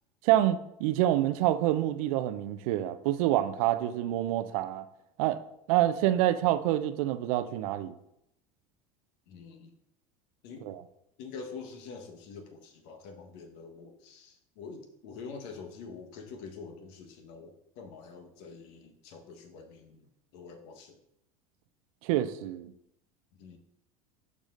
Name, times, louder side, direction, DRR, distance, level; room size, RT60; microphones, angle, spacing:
voice 1, 0.2-4.8 5.2-5.4 5.7-7.9 10.6-10.8 22.0-22.7, right 13 dB, 70° right, 0.6 m, -27 dB
voice 2, 9.3-9.8 10.4-10.7 11.2-21.0 23.4-23.6, left 5 dB, 65° left, 1.3 m, -46 dB
12.0 x 4.9 x 2.5 m
hypercardioid pair, 80°, 19 cm